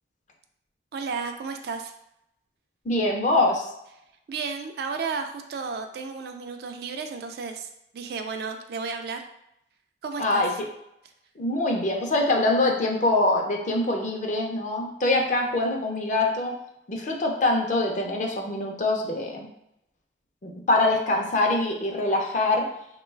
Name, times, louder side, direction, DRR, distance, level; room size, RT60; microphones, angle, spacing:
voice 1, 0.9-1.9 4.3-7.7 7.9-9.3 10.0-10.4, right 5 dB, 60° right, 6 dB, 0.3 m, -33 dB
voice 2, 2.8-3.7 10.2-10.5 11.4-16.5 16.9-19.5 20.4-22.7, left 2 dB, 45° left, 1 dB, 0.5 m, -24 dB
3.0 x 2.2 x 3.2 m, 0.80 s
head